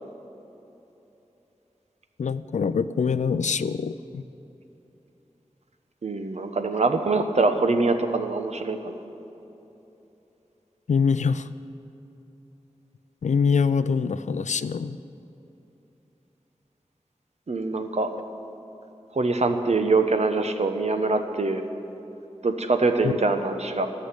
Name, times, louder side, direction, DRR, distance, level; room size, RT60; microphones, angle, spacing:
voice 1, 2.2-4.2 10.9-11.5 13.2-15.0 23.0-23.1, left 5 dB, 90° left, 14 dB, 0.4 m, -24 dB
voice 2, 6.0-9.0 17.5-18.1 19.1-21.6 22.4-23.9, right 3 dB, 70° right, 7 dB, 1.0 m, -24 dB
14.5 x 6.5 x 9.8 m, 3.0 s
wide cardioid pair, 70°, 12 cm